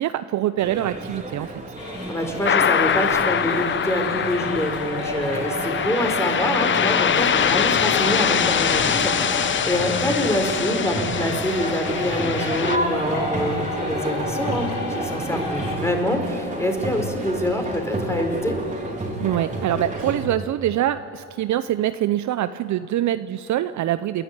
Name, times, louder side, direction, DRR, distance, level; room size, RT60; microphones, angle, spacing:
voice 1, 0.0-1.5 19.2-24.2, right 12 dB, 55° right, 13 dB, 0.7 m, -24 dB
sound 1, 0.6-20.3, right 1 dB, 20° right, 3.9 m, -31 dB
sound 2, 1.8-15.8, left 3 dB, 70° left, 4.3 m, -33 dB
voice 2, 2.1-18.6, equal, 10° left, 3 dB, 4.3 m, -26 dB
sound 3, 2.5-12.8, left 8 dB, 35° left, 0.8 m, -23 dB
29.0 x 11.0 x 9.4 m, 2.6 s
supercardioid pair, 70°, 35 cm